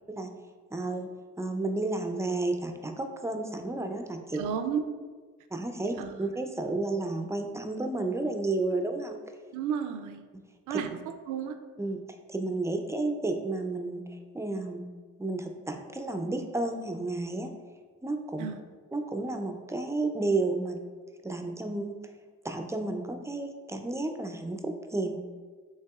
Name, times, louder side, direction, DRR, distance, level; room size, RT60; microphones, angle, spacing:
voice 1, 0.7-1.1 1.4-4.4 5.5-9.2 10.7-10.8 11.8-12.0 12.3-14.0 14.3-14.9 15.2-17.5 18.0-18.5 18.9-20.8 21.2-21.9 22.4-25.2, right 2 dB, 10° right, 5 dB, 0.4 m, -31 dB
voice 2, 4.3-4.8 6.0-6.1 9.5-10.3 10.7-10.9 11.3-11.5 18.4-18.6, right 7 dB, 85° right, 8 dB, 0.4 m, -32 dB
5.6 x 3.4 x 2.3 m, 1.5 s
cardioid pair, 90°, 30 cm